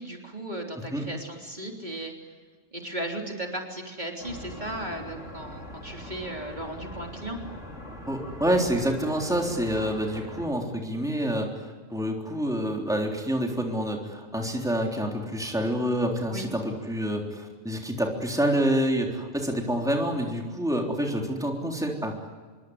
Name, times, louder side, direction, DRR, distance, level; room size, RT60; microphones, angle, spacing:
voice 1, 0.0-2.1 2.7-7.4 16.3-16.5, right 1 dB, 40° right, 1 dB, 3.7 m, -36 dB
sound 1, 4.2-10.5, left 1 dB, 90° left, 4.5 m, -41 dB
voice 2, 8.1-22.1, equal, 5° right, 1 dB, 3.7 m, -27 dB
26.5 x 23.5 x 9.6 m, 1.4 s
omnidirectional pair, 1.2 m